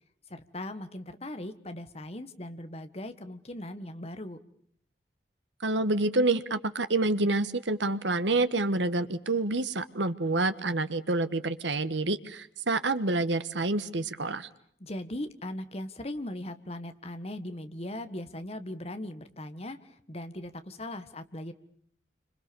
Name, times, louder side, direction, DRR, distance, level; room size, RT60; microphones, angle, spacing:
voice 1, 0.3-4.4 14.8-21.5, left 1 dB, 35° left, 10 dB, 1.6 m, -39 dB
voice 2, 5.6-14.5, right 2 dB, 90° right, 12 dB, 1.4 m, -28 dB
28.0 x 26.0 x 7.0 m, 0.64 s
head